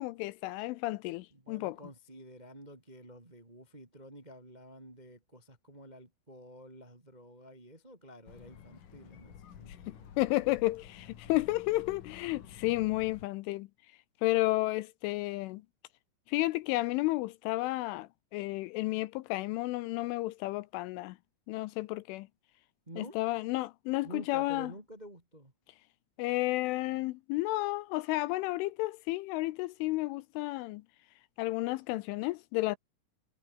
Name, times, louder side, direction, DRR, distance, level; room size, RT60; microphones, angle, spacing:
voice 1, 0.0-1.8 9.9-13.7 14.2-15.6 16.3-21.2 21.5-22.3 23.0-24.7 26.2-30.8 31.4-32.8, left 19 dB, 85° left, 2.9 m, -32 dB
voice 2, 1.3-10.4 22.8-23.2 24.0-25.5, equal, 15° right, 1.3 m, -50 dB
sound 1, 8.3-13.3, left 8 dB, 50° left, 3.3 m, -51 dB
omnidirectional pair, 5.9 m